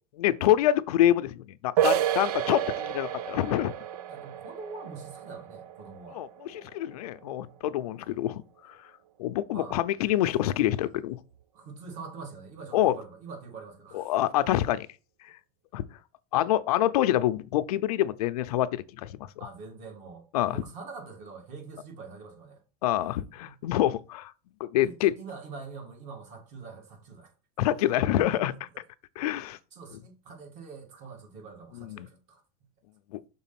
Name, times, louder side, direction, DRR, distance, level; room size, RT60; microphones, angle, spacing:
voice 1, 0.2-3.7 6.1-8.4 9.2-11.2 12.7-12.9 13.9-14.9 15.7-15.8 16.3-19.3 20.3-20.6 22.8-24.3 24.6-25.1 27.6-28.5 29.2-29.6 31.8-32.1 33.1-33.2, left 13 dB, 90° left, 0.6 m, -26 dB
sound 1, 1.8-7.2, right 11 dB, 85° right, 0.5 m, -31 dB
voice 2, 3.7-6.2 7.2-7.6 9.5-9.8 11.5-14.1 19.4-22.6 23.4-23.5 24.8-27.3 28.2-28.4 29.7-32.4, right 4 dB, 40° right, 2.1 m, -44 dB
6.1 x 3.9 x 5.8 m
supercardioid pair, 165°, 19 cm